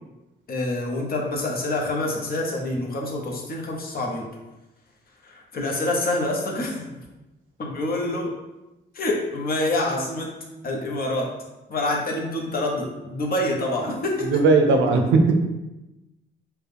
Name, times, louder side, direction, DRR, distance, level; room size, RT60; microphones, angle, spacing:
voice 1, 0.5-4.3 5.2-6.9 7.6-8.3 8.9-10.3 10.6-11.3 11.7-14.4, left 2 dB, 50° left, -1 dB, 1.0 m, -26 dB
voice 2, 14.3-15.4, right 3 dB, 85° right, 4 dB, 0.6 m, -17 dB
4.6 x 2.3 x 3.3 m, 1.0 s
cardioid pair, 90°, 20 cm